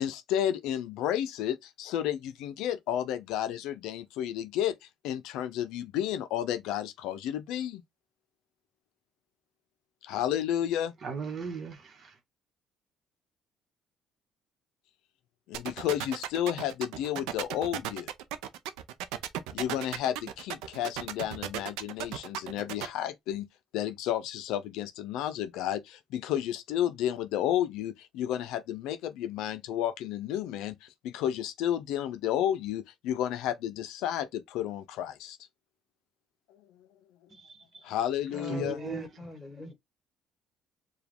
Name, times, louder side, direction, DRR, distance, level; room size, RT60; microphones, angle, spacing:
voice 1, 0.0-7.8 10.0-10.9 15.5-18.1 19.5-23.5 23.7-35.4 37.8-38.8, left 11 dB, 80° left, 0.4 m, -32 dB
voice 2, 11.0-12.1 37.3-37.8 38.5-39.1, right 6 dB, 50° right, 1.0 m, -38 dB
sound 1, 15.5-22.9, right 11 dB, 85° right, 0.5 m, -35 dB
voice 3, 38.2-39.7, left 1 dB, 10° left, 1.9 m, -41 dB
4.7 x 2.3 x 3.5 m
supercardioid pair, 80°, 0 cm